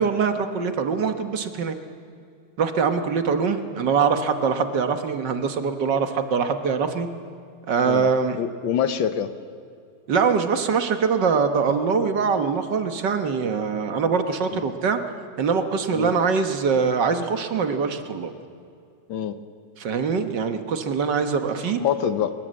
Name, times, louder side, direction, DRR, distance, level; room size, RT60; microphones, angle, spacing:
voice 1, 0.0-1.8 2.6-7.1 7.7-8.4 10.1-15.0 15.4-18.3 19.8-21.8, right 5 dB, 65° right, 7 dB, 1.9 m, -23 dB
voice 2, 7.8-9.3 14.5-14.6 15.9-16.1 19.1-19.4 21.8-22.3, left 9 dB, 80° left, 10 dB, 1.8 m, -25 dB
23.0 x 21.0 x 7.7 m, 2.4 s
omnidirectional pair, 2.1 m